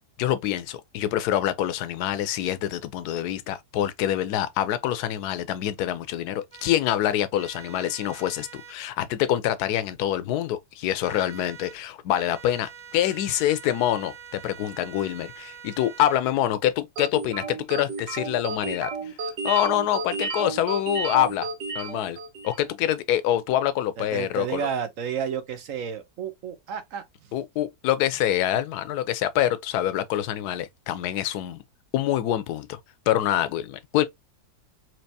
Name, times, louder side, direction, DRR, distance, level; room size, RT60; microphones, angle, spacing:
voice 1, 0.2-18.9 19.4-21.5 21.7-22.2 22.4-24.7 27.3-31.6 31.9-32.8 33.1-34.1, left 12 dB, 75° left, 1.1 m, -26 dB
sound 1, 6.5-6.8 7.4-8.8 11.0-11.8 12.1-16.2, right 8 dB, 30° right, 0.8 m, -45 dB
sound 2, 17.0-22.7, right 4 dB, 90° right, 1.8 m, -32 dB
voice 2, 24.0-27.0, right 7 dB, 60° right, 1.1 m, -31 dB
4.5 x 2.8 x 2.7 m
omnidirectional pair, 1.8 m